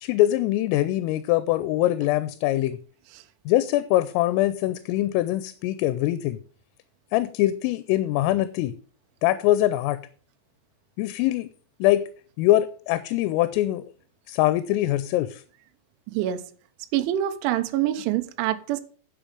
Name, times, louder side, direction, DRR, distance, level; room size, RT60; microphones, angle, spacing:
voice 1, 0.0-2.8 3.5-6.4 7.1-8.7 9.2-10.0 11.0-11.5 11.8-12.0 12.4-13.8 14.3-15.4, left 15 dB, 85° left, 3.3 m, -23 dB
voice 2, 16.1-16.4 16.9-18.8, right 12 dB, 75° right, 3.2 m, -25 dB
10.5 x 7.5 x 5.0 m
omnidirectional pair, 5.9 m